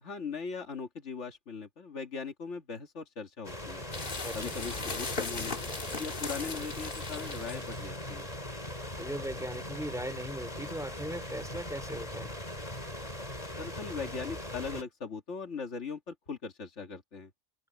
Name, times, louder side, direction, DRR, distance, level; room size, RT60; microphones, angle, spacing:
voice 1, 0.0-3.9 4.3-5.5 6.0-8.3 13.6-17.3, left 5 dB, 80° left, 2.3 m, -39 dB
sound 1, 3.4-14.8, left 1 dB, 35° left, 5.7 m, -40 dB
sound 2, 3.9-8.0, left 3 dB, 50° left, 1.8 m, -38 dB
voice 2, 4.2-4.6 9.0-12.3, right 1 dB, 5° right, 3.9 m, -38 dB
open air
omnidirectional pair, 1.2 m